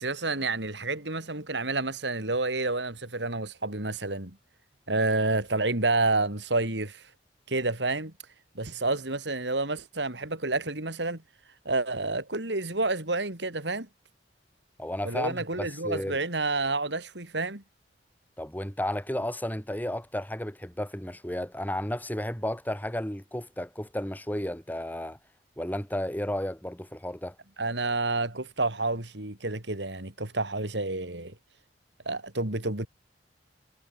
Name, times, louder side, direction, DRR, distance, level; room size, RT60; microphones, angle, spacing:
voice 1, 0.0-4.4 4.9-7.0 7.5-8.1 8.6-11.2 11.7-13.9 15.0-17.6 27.6-31.3 32.1-32.9, right 2 dB, 70° right, 3.8 m, -29 dB
voice 2, 14.8-16.2 18.4-25.2 25.6-27.3, left 1 dB, 10° left, 4.6 m, -33 dB
head